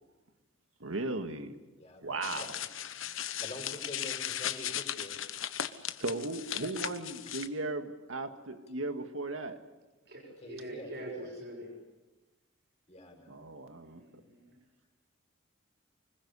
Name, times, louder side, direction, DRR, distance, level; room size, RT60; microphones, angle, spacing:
voice 1, 0.8-1.6 2.0-2.6 6.0-9.6 13.3-14.0, right 2 dB, 85° right, 7 dB, 2.0 m, -36 dB
voice 2, 1.8-2.5 3.4-5.2 10.4-11.3 12.9-13.4, left 1 dB, 30° left, 1 dB, 5.9 m, -46 dB
sound 1, 2.2-7.5, left 10 dB, 70° left, 1.1 m, -37 dB
voice 3, 10.1-11.7 13.8-14.5, right 1 dB, 55° right, 1 dB, 6.3 m, -44 dB
25.0 x 21.0 x 8.4 m, 1.2 s
head